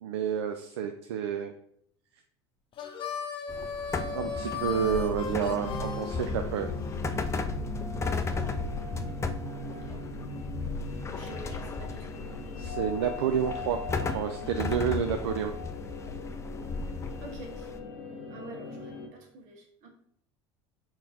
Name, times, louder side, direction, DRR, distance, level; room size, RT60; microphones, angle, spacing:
voice 1, 0.0-1.5 4.1-6.7 12.6-15.5, right 8 dB, 80° right, 5 dB, 0.4 m, -30 dB
Harmonica, 2.7-7.0, left 6 dB, 40° left, 0.8 m, -37 dB
sound 1, 3.5-17.8, left 4 dB, 20° left, 0.5 m, -35 dB
sound 2, 3.9-19.1, left 2 dB, 70° left, 0.8 m, -40 dB
voice 2, 9.6-10.0 11.2-12.1 17.2-17.7 18.3-19.9, right 3 dB, 60° right, 2 dB, 1.3 m, -48 dB
4.3 x 3.7 x 2.8 m, 0.68 s
hypercardioid pair, 80°, 14 cm